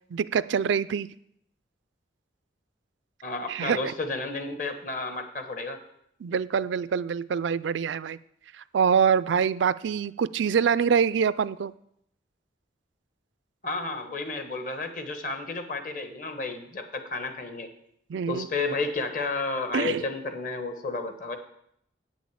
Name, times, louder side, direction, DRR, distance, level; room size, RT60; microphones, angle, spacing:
voice 1, 0.1-1.1 3.5-3.8 6.2-8.2 8.7-11.7 18.1-18.5 19.7-20.0, right 7 dB, 80° right, 17 dB, 0.4 m, -25 dB
voice 2, 3.2-5.8 13.6-17.7 18.3-21.4, left 3 dB, 45° left, 7 dB, 1.2 m, -32 dB
8.7 x 6.3 x 8.3 m, 0.73 s
head